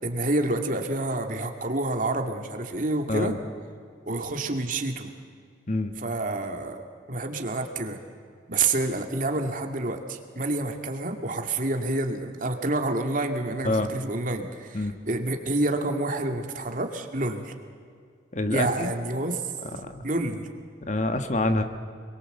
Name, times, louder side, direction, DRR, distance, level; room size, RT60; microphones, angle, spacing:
voice 1, 0.0-3.3 4.1-5.1 6.0-6.8 7.1-8.0 8.5-17.5 18.5-19.4 20.0-20.5, right 2 dB, 45° right, 4 dB, 2.3 m, -28 dB
voice 2, 18.3-18.9 19.8-20.0 20.9-21.6, left 2 dB, 40° left, 8 dB, 1.4 m, -26 dB
26.0 x 22.5 x 8.1 m, 2.2 s
head